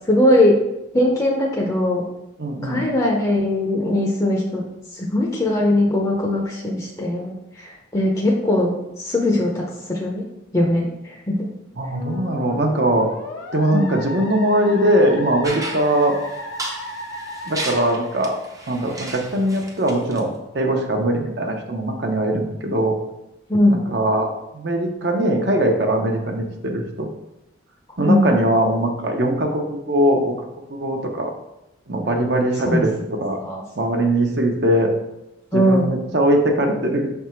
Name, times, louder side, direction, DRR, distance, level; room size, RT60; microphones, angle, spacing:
voice 1, 0.1-0.6 0.9-2.0 2.6-4.6 4.9-8.7 9.0-10.2 10.5-11.5 13.7-13.9 23.5-23.8 28.1-28.3 32.6-33.1 33.4-33.6 35.5-35.9, left 1 dB, 20° left, -2 dB, 0.7 m, -20 dB
voice 2, 2.4-2.9 11.8-13.1 13.5-16.1 17.5-18.4 18.7-22.9 23.7-24.3 24.5-27.1 28.0-30.3 30.7-31.3 31.9-33.4 33.8-34.9 35.5-37.1, right 1 dB, 60° right, 2 dB, 0.9 m, -21 dB
Musical instrument, 11.9-18.8, left 2 dB, 80° left, 1.1 m, -35 dB
sound 1, 15.4-20.2, right 2 dB, 15° right, 0.6 m, -34 dB
5.9 x 3.5 x 4.5 m, 0.90 s
head